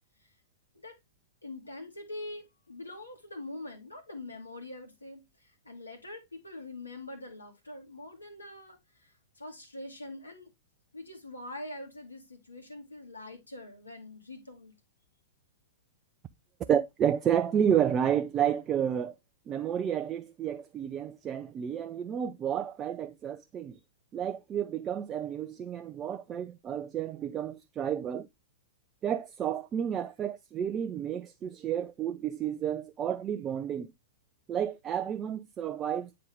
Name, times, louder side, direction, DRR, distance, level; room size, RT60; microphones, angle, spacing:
voice 1, 1.4-10.5 10.9-14.7, left 2 dB, 80° left, 2.1 m, -44 dB
voice 2, 16.6-19.2 19.5-23.8 24.1-28.3 29.0-33.9 34.5-36.2, right 9 dB, 25° right, 0.4 m, -31 dB
8.8 x 3.8 x 3.5 m
figure-of-eight pair, 105°, 0 cm